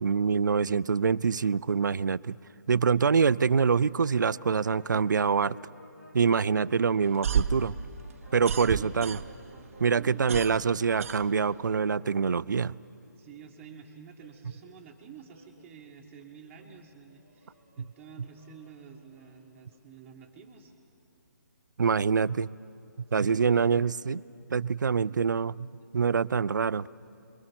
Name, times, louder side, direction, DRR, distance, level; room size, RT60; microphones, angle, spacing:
voice 1, 0.0-2.4 2.7-5.6 6.1-7.7 8.3-9.2 9.8-12.8 17.8-17.9 21.8-22.5 23.1-24.2 24.5-25.7 25.9-26.9, right 6 dB, 75° right, 20 dB, 0.4 m, -25 dB
sound 1, 3.1-14.8 15.3-19.4 19.7-19.8 20.0-20.4 22.9-23.0, equal, 75° left, 6.9 m, -54 dB
voice 2, 6.7-7.0 8.4-9.0 9.9-10.5 13.2-20.7 23.2-23.8 25.0-25.2, right 7 dB, 15° right, -6 dB, 1.5 m, -49 dB
sound 2, 7.0-9.6 9.9-11.8, right 7 dB, 45° right, 0.8 m, -31 dB
26.5 x 22.5 x 6.2 m, 2.6 s
figure-of-eight pair, 150°, 10 cm